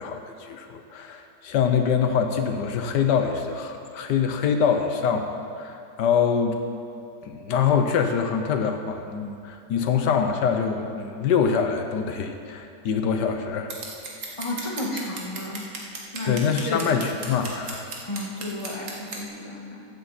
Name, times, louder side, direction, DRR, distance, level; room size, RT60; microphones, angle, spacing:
voice 1, 0.0-6.6 7.2-13.7 16.3-17.9, left 6 dB, 75° left, 6 dB, 1.4 m, -24 dB
Scissors, 13.7-19.2, right 3 dB, 50° right, 1.6 m, -36 dB
voice 2, 14.4-15.7 16.1-16.4 16.6-16.8 18.0-19.9, left 1 dB, 20° left, -3 dB, 1.6 m, -32 dB
14.5 x 9.1 x 4.2 m, 2.6 s
omnidirectional pair, 1.9 m